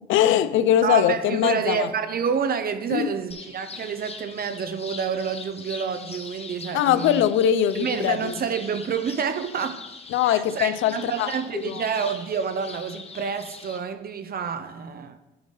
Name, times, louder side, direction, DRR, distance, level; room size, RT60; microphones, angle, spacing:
voice 1, 0.1-1.9 2.9-3.1 6.7-8.3 10.1-11.3 11.6-11.8, left 10 dB, 85° left, 0.5 m, -21 dB
voice 2, 0.8-7.2 7.7-9.8 10.2-15.2, right 6 dB, 50° right, 0.6 m, -28 dB
sound 1, 3.3-13.8, left 4 dB, 30° left, 0.9 m, -42 dB
10.5 x 3.8 x 5.3 m
cardioid pair, 90°, 20 cm